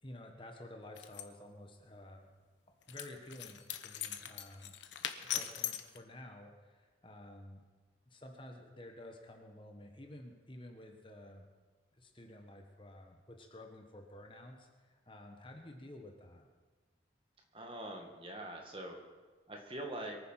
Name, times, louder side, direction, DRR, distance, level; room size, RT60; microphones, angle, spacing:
voice 1, 0.0-2.3 2.9-4.8 5.3-7.6 8.1-11.5 11.9-16.5, left 1 dB, 30° left, 3 dB, 1.3 m, -52 dB
sound 1, 1.0-1.2 2.9-6.0, left 10 dB, 90° left, 1.0 m, -40 dB
voice 2, 17.5-19.0 19.5-20.2, right 1 dB, 30° right, 2 dB, 2.0 m, -43 dB
22.5 x 9.6 x 5.8 m, 1.4 s
head